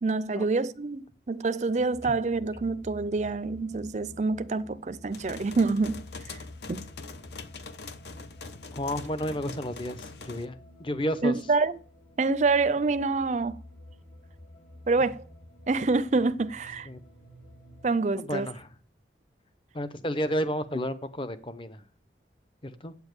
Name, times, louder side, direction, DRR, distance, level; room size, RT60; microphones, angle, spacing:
voice 1, 0.0-6.4 6.7-6.9 11.2-11.8 12.2-13.6 14.9-15.2 15.7-16.9 17.8-18.5, right 3 dB, 40° right, 0.4 m, -27 dB
sound 1, 1.8-17.9, left 1 dB, 45° left, 2.7 m, -49 dB
sound 2, 5.1-10.4, left 4 dB, 65° left, 0.8 m, -44 dB
voice 2, 8.7-11.3 16.9-17.0 18.2-18.7 19.7-21.8 22.6-22.9, equal, 30° left, 0.7 m, -32 dB
8.7 x 7.0 x 8.1 m
head